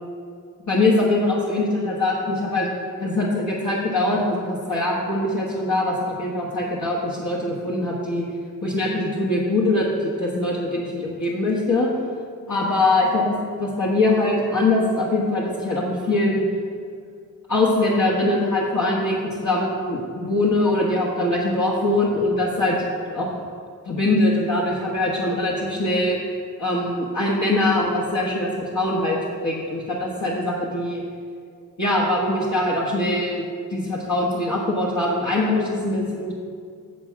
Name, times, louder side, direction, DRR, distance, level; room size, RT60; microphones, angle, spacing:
voice 1, 0.7-2.7 3.0-8.3 8.6-11.9 12.5-16.4 17.5-22.8 23.1-23.3 23.9-26.2 26.6-28.5 28.7-29.2 29.4-31.0 31.8-36.3, left 2 dB, 50° left, -5 dB, 1.5 m, -22 dB
8.1 x 7.3 x 4.7 m, 2.2 s
cardioid pair, 60°, 37 cm